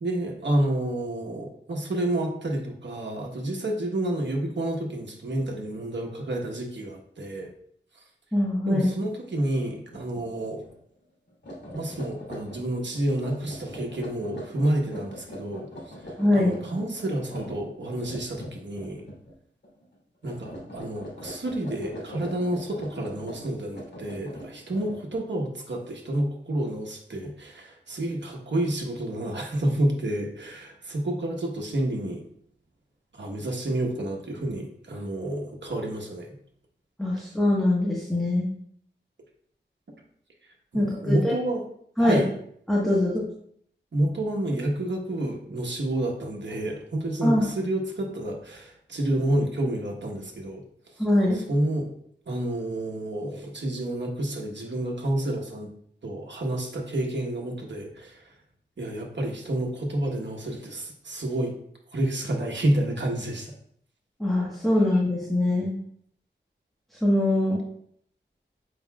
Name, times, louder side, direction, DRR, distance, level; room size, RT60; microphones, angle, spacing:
voice 1, 0.0-7.5 8.6-10.7 11.7-15.7 16.3-19.0 20.2-32.2 33.1-36.4 40.7-41.6 42.0-42.3 43.9-50.6 51.0-51.1 51.3-51.9 52.3-55.7 56.0-58.2 58.8-61.5 61.9-63.5, right 1 dB, 70° right, 0 dB, 1.2 m, -29 dB
voice 2, 8.3-8.9 16.2-16.5 37.0-38.5 40.7-41.3 42.0-42.3 42.7-43.2 47.2-47.4 51.0-51.4 64.2-65.7 67.0-67.6, left 1 dB, ahead, -5 dB, 1.3 m, -23 dB
sound 1, 9.9-10.2 10.6-10.8 11.3-19.3 19.6-20.0 20.2-25.3, equal, 65° left, 2.5 m, -42 dB
7.9 x 5.3 x 2.4 m, 0.66 s
wide cardioid pair, 90°, 19 cm